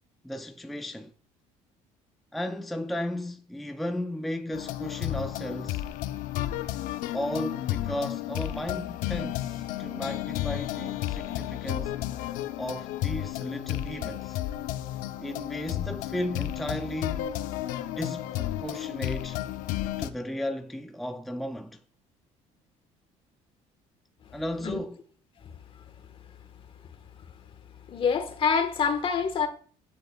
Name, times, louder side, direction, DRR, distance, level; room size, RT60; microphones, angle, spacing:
voice 1, 0.2-1.1 2.3-5.8 7.1-12.0 12.6-14.4 15.2-17.3 18.0-19.4 20.0-21.8 24.3-25.0, left 1 dB, ahead, 0.5 m, -35 dB
sound 1, 4.5-20.1, left 13 dB, 75° left, 0.6 m, -32 dB
voice 2, 27.9-29.5, left 6 dB, 40° left, 1.4 m, -26 dB
11.0 x 9.2 x 2.3 m
cardioid pair, 115°, 14 cm